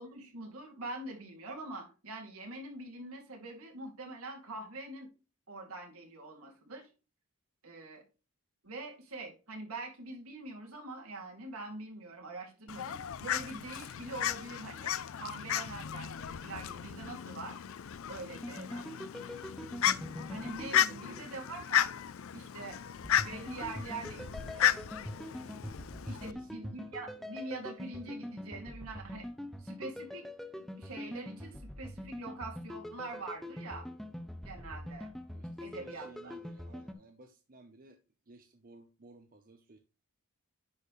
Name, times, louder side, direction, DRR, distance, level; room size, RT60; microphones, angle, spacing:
voice 1, 0.0-5.1 5.5-6.9 7.6-8.0 8.6-17.6 18.1-18.9 20.3-21.9 22.3-22.8 23.2-24.7 26.0-29.3 29.6-30.3 30.5-33.9 34.4-35.1 35.6-36.3, right 2 dB, 75° right, 2.6 m, -44 dB
Fowl, 12.7-26.3, left 10 dB, 65° left, 0.4 m, -34 dB
sound 1, 18.4-21.8 23.0-36.9, left 1 dB, ahead, 0.6 m, -44 dB
voice 2, 20.9-21.3 26.1-26.9 29.7-29.8 35.3-38.0 38.3-39.8, right 2 dB, 40° right, 0.8 m, -57 dB
10.5 x 4.5 x 3.1 m
head